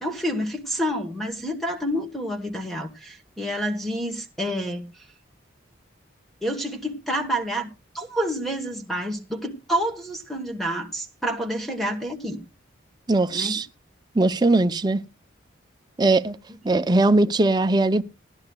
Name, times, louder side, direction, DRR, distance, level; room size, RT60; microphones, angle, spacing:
voice 1, 0.0-5.1 6.4-7.7 7.9-12.4 13.3-13.6, equal, ahead, 1.2 m, -28 dB
voice 2, 13.1-13.7 14.1-15.0 16.0-16.4 16.6-18.0, right 2 dB, 20° right, 0.5 m, -20 dB
18.5 x 11.5 x 2.3 m
head